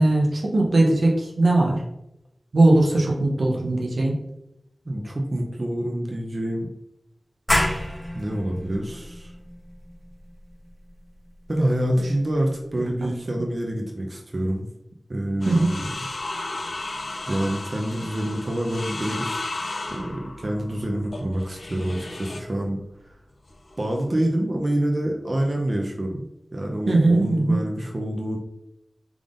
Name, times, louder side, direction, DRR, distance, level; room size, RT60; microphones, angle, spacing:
voice 1, 0.0-1.8 2.5-4.2 13.0-13.1 15.5-15.7 26.9-27.6, right 2 dB, 85° right, -1 dB, 0.7 m, -19 dB
voice 2, 4.9-6.7 8.1-9.3 11.5-14.7 15.1-15.9 17.3-19.4 19.9-22.8 23.8-26.3 26.5-28.4, right 1 dB, 50° right, 0 dB, 0.6 m, -27 dB
sound 1, 7.5-12.9, equal, 15° left, 0.9 m, -30 dB
sound 2, 15.4-22.5 23.5-24.1, left 2 dB, 75° left, 0.4 m, -34 dB
3.5 x 3.5 x 2.5 m, 0.84 s
wide cardioid pair, 60°, 0 cm